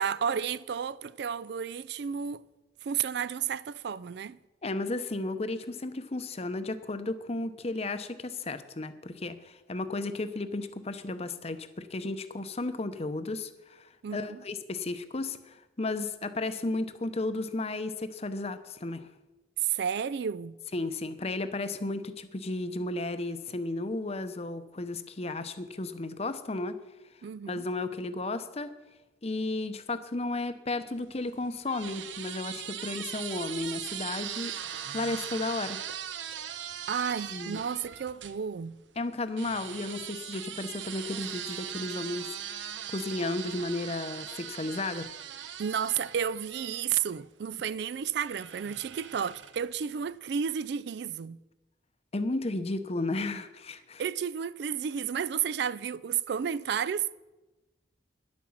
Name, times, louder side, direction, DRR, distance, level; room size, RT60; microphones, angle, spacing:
voice 1, 0.0-2.4 2.8-4.4 14.0-14.4 19.6-20.6 27.2-27.6 36.9-38.8 45.6-51.4 54.0-57.1, right 8 dB, 60° right, 0.3 m, -32 dB
voice 2, 4.6-19.1 20.7-26.8 27.5-28.7 29.2-34.5 34.9-35.8 37.3-37.6 39.0-45.1 52.1-54.0, left 2 dB, 35° left, 0.8 m, -34 dB
sound 1, 31.0-38.4 39.4-47.3 48.2-49.8, right 9 dB, 80° right, 0.8 m, -40 dB
10.5 x 8.7 x 7.2 m
head